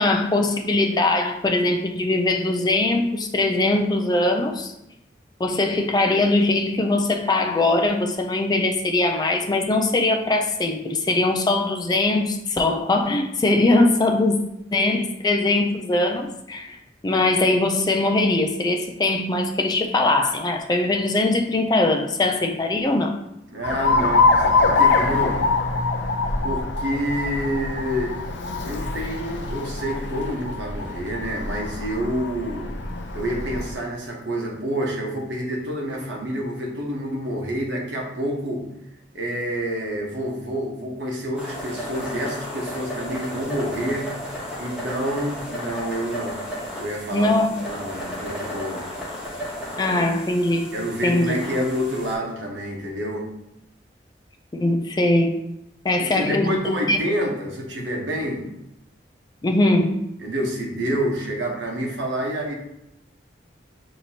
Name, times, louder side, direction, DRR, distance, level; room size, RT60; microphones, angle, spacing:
voice 1, 0.0-4.7 5.4-14.4 14.7-16.8 17.0-23.1 47.1-47.6 49.8-50.7 51.0-51.3 54.5-55.4 55.8-56.6 56.9-57.0 59.4-60.0, left 2 dB, 20° left, 4 dB, 0.3 m, -21 dB
voice 2, 23.5-25.5 26.4-28.1 28.6-32.7 33.1-38.7 39.1-44.1 44.6-46.4 46.7-48.8 50.7-53.3 56.0-58.5 60.2-62.5, equal, 80° right, 0 dB, 1.0 m, -28 dB
Alarm, 23.6-33.7, left 3 dB, 80° left, 0.5 m, -24 dB
sound 1, 41.4-52.2, equal, 5° right, 0.9 m, -34 dB
6.6 x 2.8 x 2.8 m, 0.84 s
head